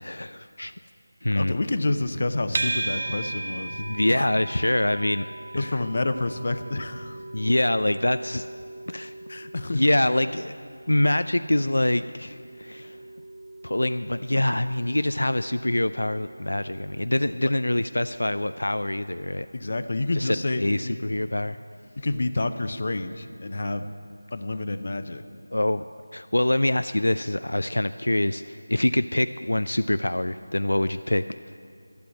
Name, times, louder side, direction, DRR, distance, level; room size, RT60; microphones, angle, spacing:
voice 1, 0.0-0.7 1.2-1.5 3.8-5.3 5.5-5.7 7.3-8.5 8.9-9.1 9.7-10.5 10.9-13.0 13.6-19.5 20.1-21.6 25.5-25.8 26.1-31.2, left 1 dB, 85° left, 12 dB, 0.3 m, -25 dB
voice 2, 1.4-3.8 4.1-4.3 5.5-7.2 9.3-9.8 19.5-21.0 22.0-23.9 24.3-25.2, left 2 dB, 50° left, 10 dB, 0.7 m, -28 dB
sound 1, 2.5-19.7, right 2 dB, 55° right, 0.8 m, -38 dB
12.0 x 7.6 x 9.7 m, 2.4 s
figure-of-eight pair, 170°, 0 cm